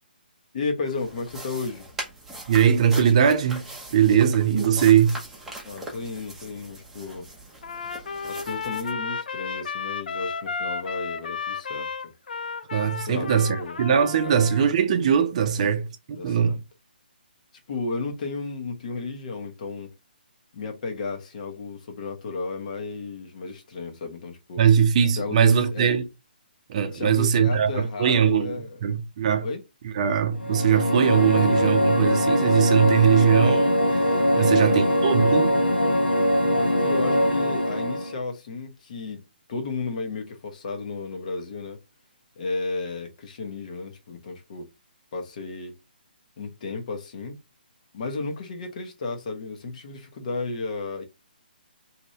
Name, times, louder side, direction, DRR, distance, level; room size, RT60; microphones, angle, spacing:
voice 1, 0.5-1.9 5.6-7.3 8.2-11.9 13.0-13.8 14.2-14.4 15.6-15.7 16.2-16.6 17.7-19.9 20.5-24.6 25.1-25.9 26.9-28.8 29.4-29.6 34.4-34.8 36.5-39.2 39.5-41.8 42.4-44.7 45.1-45.8 46.4-47.4 47.9-51.0, left 3 dB, 45° left, 0.9 m, -33 dB
sound 1, 0.9-8.9, right 1 dB, 5° right, 0.7 m, -40 dB
voice 2, 2.5-3.6 3.9-5.1 12.7-16.6 24.6-26.0 26.7-28.6 28.8-29.5 29.8-35.5, right 8 dB, 40° right, 0.6 m, -21 dB
Trumpet, 7.6-14.7, left 5 dB, 65° left, 0.4 m, -33 dB
sound 2, 30.4-38.2, equal, 90° left, 1.1 m, -22 dB
2.8 x 2.6 x 3.1 m
figure-of-eight pair, 145°, 5 cm